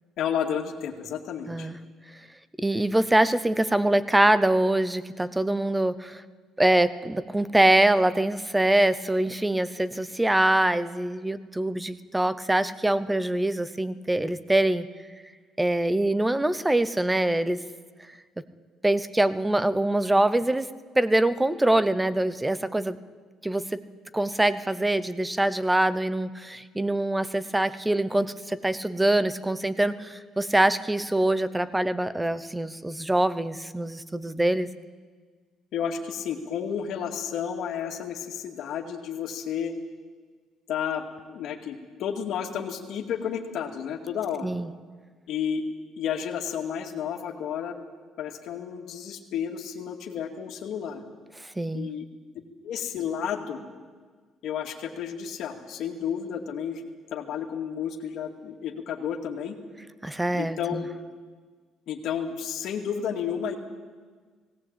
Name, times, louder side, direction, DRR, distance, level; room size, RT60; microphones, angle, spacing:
voice 1, 0.2-1.7 35.7-39.7 40.7-44.5 45.3-45.6 46.0-47.8 48.2-51.0 51.7-52.1 52.6-53.6 54.4-56.8 57.1-59.6 60.3-60.9 61.9-63.5, left 8 dB, 60° left, 2 dB, 2.4 m, -31 dB
voice 2, 2.6-6.2 6.6-14.9 15.6-17.6 18.8-20.7 21.0-23.0 23.4-23.8 24.1-34.7 44.4-44.7 51.6-51.9 60.0-60.9, right 1 dB, 5° right, 15 dB, 0.8 m, -24 dB
18.0 x 17.5 x 9.0 m, 1.5 s
cardioid pair, 145°, 0 cm